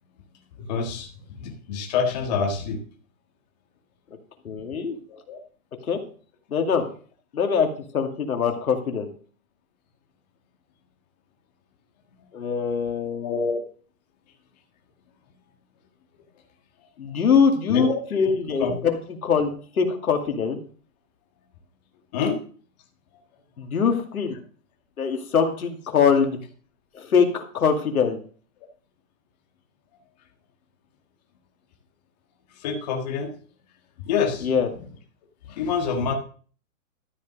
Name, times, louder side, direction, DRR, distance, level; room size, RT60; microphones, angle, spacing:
voice 1, 0.7-1.1 1.4-2.8 5.1-5.4 13.2-13.6 17.7-18.0 18.6-18.7 22.1-22.4 32.6-33.3 34.0-34.5 35.5-36.1, left 6 dB, 30° left, 1 dB, 1.6 m, -26 dB
voice 2, 4.4-5.0 5.9-6.0 6.5-6.8 7.3-7.7 7.9-9.1 12.3-13.3 17.0-19.0 19.2-19.5 19.8-20.6 23.6-24.4 25.0-26.4 26.9-28.2 34.4-34.7, left 6 dB, 85° left, 4 dB, 2.4 m, -23 dB
13.0 x 5.3 x 6.3 m, 0.43 s
hypercardioid pair, 165°, 42 cm